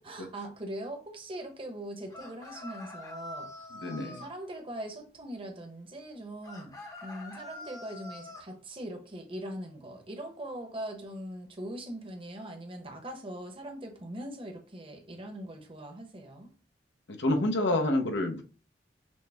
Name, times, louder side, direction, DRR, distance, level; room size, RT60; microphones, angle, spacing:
voice 1, 0.0-6.7 7.0-16.5, right 1 dB, 30° right, 0.9 m, -41 dB
sound 1, 2.1-4.3 6.4-8.5, left 2 dB, 20° left, 0.7 m, -45 dB
voice 2, 3.7-4.2 17.1-18.4, left 1 dB, 90° left, 0.8 m, -28 dB
6.2 x 2.1 x 3.3 m
head